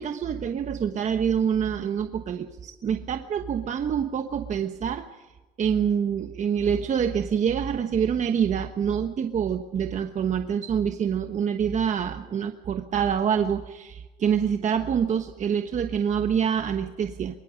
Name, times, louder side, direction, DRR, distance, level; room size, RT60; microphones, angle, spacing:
voice 1, 0.0-5.3 5.6-17.4, right 7 dB, 45° right, 6 dB, 1.2 m, -26 dB
23.5 x 23.0 x 5.2 m, 1.2 s
cardioid pair, 110°, 17 cm